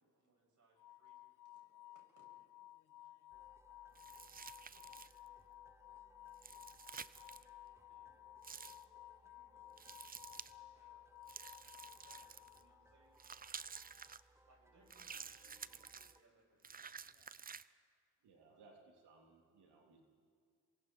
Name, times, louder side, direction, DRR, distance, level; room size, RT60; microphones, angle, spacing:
voice 1, 0.0-2.3 7.8-10.0 10.5-11.1 12.1-13.2 14.3-16.9, right 2 dB, 45° right, 0 dB, 7.8 m, -73 dB
sound 1, 0.8-13.0, left 15 dB, 50° left, 0.5 m, -57 dB
voice 2, 2.4-3.4 3.9-4.4 4.7-5.2 17.1-17.4, left 7 dB, 70° left, 3 dB, 2.7 m, -81 dB
sound 2, 3.3-16.2, right 1 dB, 5° right, 0.9 m, -68 dB
sound 3, 3.9-5.3 6.3-7.4 8.4-8.8 9.8-10.5 11.3-12.6 13.2-14.2 14.9-16.2 16.6-17.6, right 6 dB, 20° right, 0.5 m, -51 dB
voice 3, 18.2-20.0, right 3 dB, 75° right, 0 dB, 3.3 m, -64 dB
27.5 x 23.5 x 4.7 m, 2.2 s
cardioid pair, 75°, 41 cm